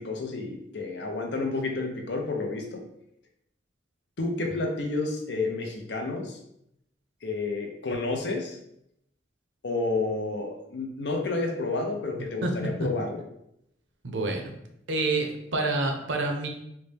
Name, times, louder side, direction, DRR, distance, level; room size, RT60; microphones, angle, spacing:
voice 1, 0.0-2.8 4.2-6.4 7.2-8.6 9.6-13.3, left 3 dB, 65° left, 3 dB, 0.6 m, -30 dB
voice 2, 14.0-14.6 14.9-16.5, right 2 dB, 85° right, 3 dB, 0.7 m, -28 dB
4.0 x 2.2 x 3.3 m, 0.77 s
head